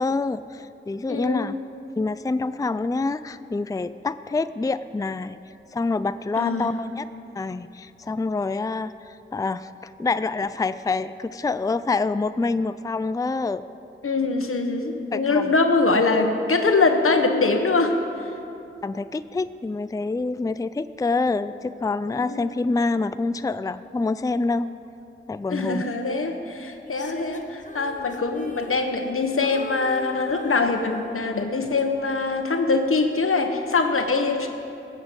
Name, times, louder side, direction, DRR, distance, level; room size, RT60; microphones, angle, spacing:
voice 1, 0.0-1.5 2.0-5.4 5.7-7.0 7.4-13.6 15.1-15.5 18.8-24.7 25.3-25.8, left 3 dB, 15° left, 13 dB, 0.4 m, -26 dB
voice 2, 1.1-1.5 6.4-6.7 14.0-18.0 22.2-22.5 25.5-34.5, left 3 dB, 85° left, 5 dB, 1.2 m, -23 dB
Female singing, 26.9-29.2 29.4-31.5 32.0-32.2, left 3 dB, 35° left, 1.2 m, -40 dB
18.0 x 7.3 x 8.0 m, 2.7 s
wide cardioid pair, 50°, 21 cm